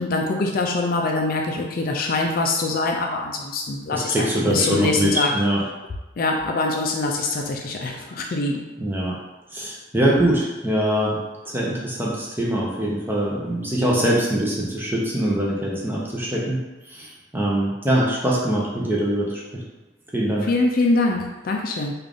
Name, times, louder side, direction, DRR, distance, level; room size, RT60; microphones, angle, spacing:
voice 1, 0.0-5.3 6.2-8.6 20.5-21.9, left 3 dB, 45° left, 1 dB, 0.4 m, -23 dB
voice 2, 3.9-5.6 8.8-9.2 9.5-16.6 16.9-19.6 20.1-20.5, right 1 dB, 10° right, -4 dB, 0.6 m, -23 dB
3.5 x 2.4 x 3.4 m, 1.1 s
head